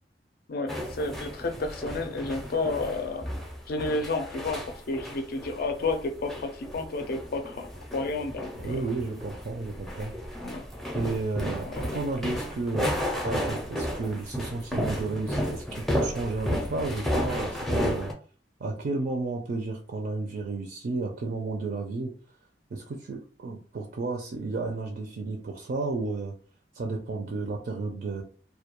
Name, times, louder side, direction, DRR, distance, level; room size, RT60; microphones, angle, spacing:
voice 1, 0.5-3.3 3.7-7.7 7.9-8.8 10.4-10.6 11.7-12.0, left 3 dB, 60° left, 5 dB, 0.4 m, -31 dB
sound 1, 0.7-18.1, equal, ahead, 0.5 m, -33 dB
voice 2, 8.5-10.1 10.9-18.1 18.6-22.1 22.7-26.3 26.7-28.2, right 3 dB, 55° right, 2 dB, 0.4 m, -32 dB
2.2 x 2.2 x 2.9 m, 0.41 s
head